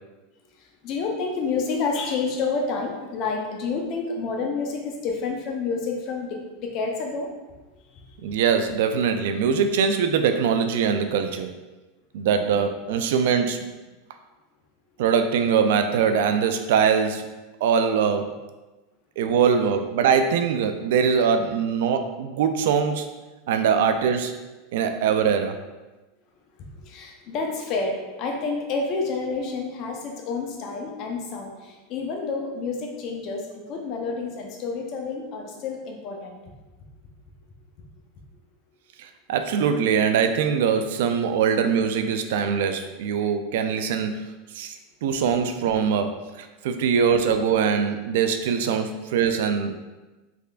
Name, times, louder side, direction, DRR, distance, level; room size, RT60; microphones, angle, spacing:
voice 1, 0.6-7.3 7.9-8.1 26.8-36.4, left 4 dB, 45° left, 1 dB, 0.6 m, -29 dB
voice 2, 8.2-11.5 12.1-13.7 15.0-17.3 17.6-18.3 19.2-23.1 23.5-24.4 24.7-25.6 39.0-44.7 45.0-49.8, right 6 dB, 75° right, 8 dB, 0.3 m, -22 dB
3.6 x 3.2 x 2.4 m, 1.1 s
supercardioid pair, 135°, 0 cm